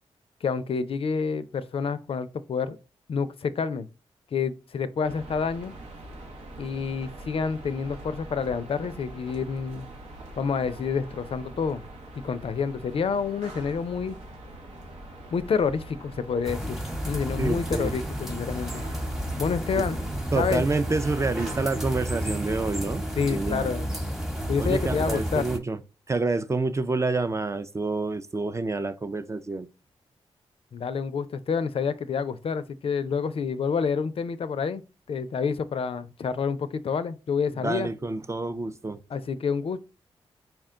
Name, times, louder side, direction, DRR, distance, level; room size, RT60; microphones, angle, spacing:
voice 1, 0.4-2.8 3.1-3.9 4.3-5.7 6.6-9.9 10.4-11.8 12.2-14.2 15.3-16.8 17.1-18.8 19.4-20.0 20.4-20.6 23.2-23.9 24.5-25.5 30.7-34.8 35.1-37.9 39.1-39.8, left 5 dB, 60° left, 0.4 m, -28 dB
sound 1, 5.0-21.6, right 1 dB, 85° right, 0.9 m, -43 dB
sound 2, 16.4-25.6, equal, 5° right, 0.9 m, -31 dB
voice 2, 17.4-17.9 19.8-19.9 20.3-23.7 24.6-25.8 26.1-29.7 37.6-39.0, right 3 dB, 25° right, 0.4 m, -28 dB
4.3 x 2.2 x 3.6 m
cardioid pair, 50°, 11 cm